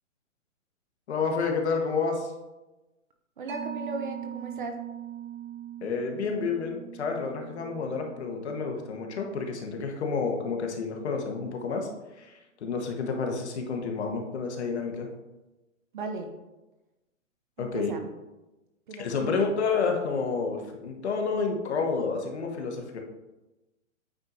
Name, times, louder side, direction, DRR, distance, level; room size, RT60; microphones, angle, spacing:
voice 1, 1.1-2.3 5.8-15.1 17.6-17.9 19.0-23.0, left 4 dB, 55° left, 3 dB, 1.2 m, -30 dB
voice 2, 3.4-4.8 15.9-16.3 17.6-18.1 18.9-19.4, right 3 dB, 40° right, 5 dB, 0.7 m, -37 dB
Mallet percussion, 3.5-10.5, right 10 dB, 75° right, 1.4 m, -42 dB
8.7 x 4.5 x 2.6 m, 1.1 s
hypercardioid pair, 155°, 40 cm